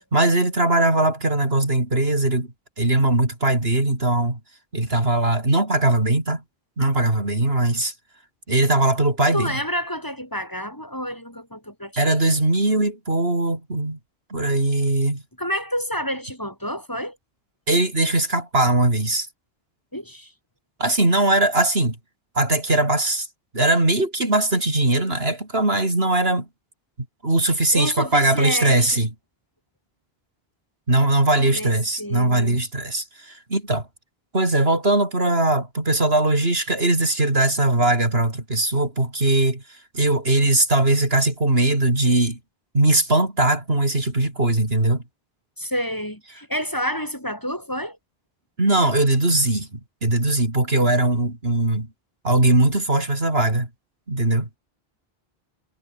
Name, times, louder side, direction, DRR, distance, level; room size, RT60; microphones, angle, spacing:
voice 1, 0.1-2.5 2.8-4.4 4.7-6.4 6.8-7.9 8.5-9.5 12.0-14.0 14.3-15.2 17.7-19.3 20.8-22.0 22.4-23.3 23.5-26.5 27.2-29.1 30.9-33.8 34.3-39.6 39.9-42.4 42.7-45.0 48.6-51.9 52.2-53.7 54.1-54.5, right 2 dB, 75° right, 5.4 m, -20 dB
voice 2, 9.3-12.0 15.4-17.2 19.9-20.3 27.7-29.1 31.3-31.7 32.0-32.6 45.6-48.0, equal, 20° left, 4.6 m, -29 dB
omnidirectional pair, 1.0 m